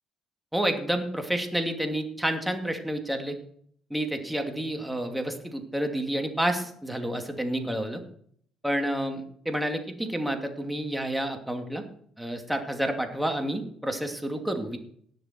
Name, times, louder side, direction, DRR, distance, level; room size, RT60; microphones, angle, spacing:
voice 1, 0.5-3.4 3.9-8.0 8.6-11.8 12.2-14.8, right 1 dB, 5° right, 5 dB, 2.6 m, -29 dB
18.0 x 7.1 x 4.5 m, 0.62 s
supercardioid pair, 70°, 0 cm